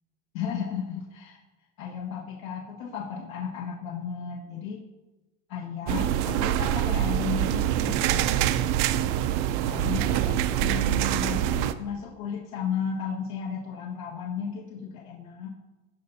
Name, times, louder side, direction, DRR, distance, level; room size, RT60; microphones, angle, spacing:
voice 1, 0.3-1.4 1.8-4.8 5.5-8.6 9.6-15.5, left 6 dB, 85° left, -3 dB, 1.7 m, -34 dB
sound 1, 5.9-11.7, right 12 dB, 60° right, 0.5 m, -25 dB
16.5 x 5.8 x 2.8 m, 1.1 s
cardioid pair, 170°, 41 cm